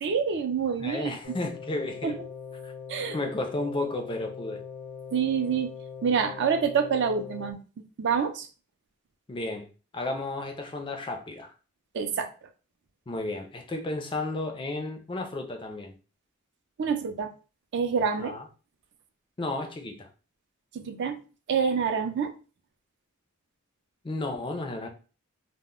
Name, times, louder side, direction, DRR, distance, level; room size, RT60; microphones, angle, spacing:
voice 1, 0.0-1.1 2.0-2.1 2.9-3.2 5.1-5.7 6.0-7.6 8.0-8.5 11.9-12.3 16.8-17.3 17.7-18.3 20.7-21.2 21.5-22.3, right 6 dB, 55° right, 0.4 m, -26 dB
voice 2, 0.8-2.2 2.6-2.7 3.1-4.6 9.3-9.7 9.9-11.5 13.1-15.9 18.2-18.5 19.4-20.1 24.0-24.9, left 2 dB, 20° left, 0.4 m, -33 dB
sound 1, 1.2-7.5, left 6 dB, 70° left, 0.6 m, -41 dB
2.1 x 2.0 x 3.6 m
head